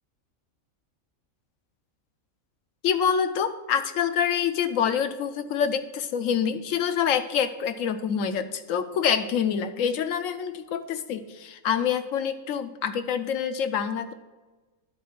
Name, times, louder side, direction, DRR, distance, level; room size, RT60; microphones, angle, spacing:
voice 1, 2.8-14.1, left 7 dB, 70° left, 10 dB, 1.1 m, -26 dB
11.0 x 4.5 x 5.9 m, 1.2 s
omnidirectional pair, 1.5 m